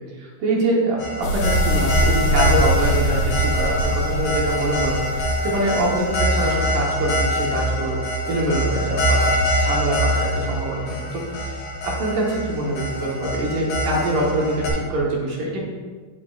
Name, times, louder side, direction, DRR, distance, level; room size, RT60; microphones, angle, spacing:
voice 1, 0.2-8.0 8.3-9.3 9.6-15.6, right 1 dB, 65° right, -3 dB, 2.4 m, -24 dB
sound 1, 1.0-14.7, equal, 55° left, 2.2 m, -24 dB
sound 2, 1.2-6.6, equal, 80° left, 2.3 m, -24 dB
9.2 x 6.2 x 2.4 m, 1.5 s
omnidirectional pair, 4.4 m